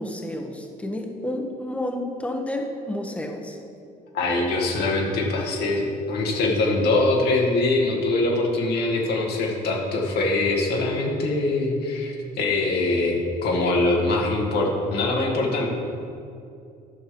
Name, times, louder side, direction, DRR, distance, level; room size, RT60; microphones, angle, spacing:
voice 1, 0.0-3.6, left 1 dB, 5° left, 3 dB, 1.2 m, -30 dB
voice 2, 4.1-15.7, left 2 dB, 70° left, -1 dB, 2.0 m, -23 dB
11.0 x 6.5 x 5.3 m, 2.5 s
cardioid pair, 110°, 17 cm